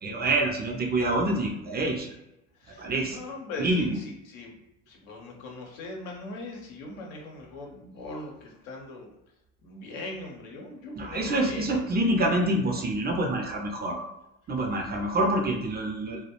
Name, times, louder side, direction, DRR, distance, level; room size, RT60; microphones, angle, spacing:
voice 1, 0.0-2.1 2.8-3.2 3.6-4.0 11.0-14.0 14.5-16.2, right 1 dB, 25° right, 1 dB, 0.4 m, -26 dB
voice 2, 2.6-4.6 4.9-9.1 9.6-12.2 12.7-13.5, left 2 dB, 75° left, 0 dB, 0.8 m, -41 dB
2.3 x 2.0 x 2.9 m, 0.91 s
hypercardioid pair, 75°, 41 cm